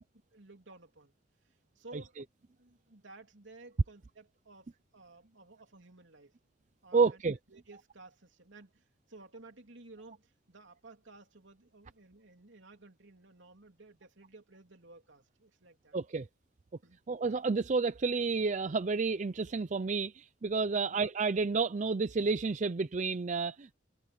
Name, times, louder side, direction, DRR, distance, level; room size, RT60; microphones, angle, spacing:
voice 1, 0.3-1.1 1.8-2.2 2.6-6.3 6.8-7.2 7.5-16.0 16.8-17.0, right 2 dB, 65° right, 3.4 m, -55 dB
voice 2, 6.9-7.4 15.9-16.3 17.1-23.7, right 4 dB, 40° right, 0.5 m, -30 dB
head